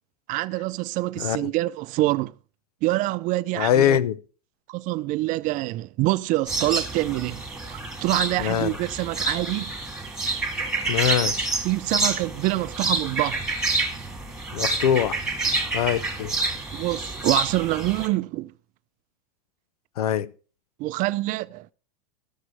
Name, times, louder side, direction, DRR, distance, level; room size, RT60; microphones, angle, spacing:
voice 1, 0.3-2.3 2.8-4.0 4.7-9.7 11.6-13.4 16.7-18.5 20.8-21.7, right 19 dB, 45° right, 0.5 m, -26 dB
voice 2, 3.6-4.2 8.4-8.7 10.9-11.5 14.5-15.2 15.7-16.3 20.0-20.3, left 10 dB, 80° left, 0.7 m, -23 dB
sound 1, 6.5-18.1, right 3 dB, 5° right, 2.2 m, -28 dB
14.5 x 6.5 x 4.7 m
hypercardioid pair, 105°, 19 cm